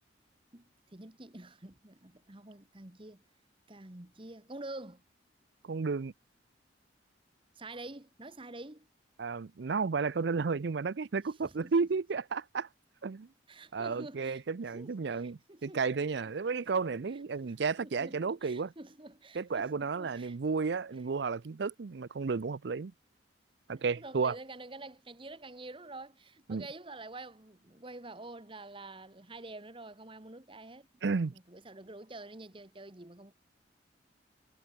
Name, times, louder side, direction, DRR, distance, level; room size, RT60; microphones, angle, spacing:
voice 1, 0.5-3.2 3.7-5.0 7.5-8.9 11.4-11.9 13.5-14.4 14.7-15.8 16.1-16.3 17.1-20.4 23.8-30.9 31.3-33.3, right 2 dB, 30° right, 1.5 m, -48 dB
voice 2, 5.6-6.1 9.2-12.7 13.0-13.3 13.7-18.7 19.3-22.9 23.7-24.4 26.5-26.6 31.0-31.4, right 4 dB, 65° right, 0.5 m, -32 dB
head